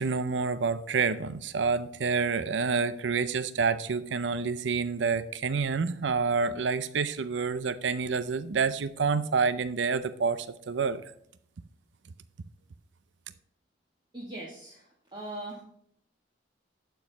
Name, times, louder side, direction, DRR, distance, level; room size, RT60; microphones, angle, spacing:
voice 1, 0.0-11.0, right 5 dB, 80° right, 0.6 m, -28 dB
voice 2, 14.1-15.6, right 1 dB, 25° right, 1.7 m, -40 dB
12.0 x 4.6 x 5.3 m
head